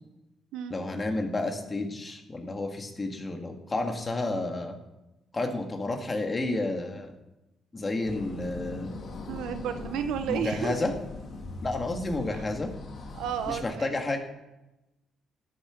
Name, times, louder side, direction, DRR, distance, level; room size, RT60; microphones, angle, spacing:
voice 1, 0.7-4.8 5.3-7.1 7.7-8.9 10.3-10.9 11.6-12.7 13.5-14.2, left 2 dB, 25° left, 4 dB, 2.0 m, -31 dB
sound 1, 8.0-13.6, left 3 dB, 55° left, 2.4 m, -40 dB
voice 2, 9.3-10.7 12.4-12.5 13.1-13.9, right 8 dB, 90° right, 9 dB, 0.9 m, -32 dB
13.0 x 7.6 x 6.0 m, 0.97 s
cardioid pair, 90°, 0 cm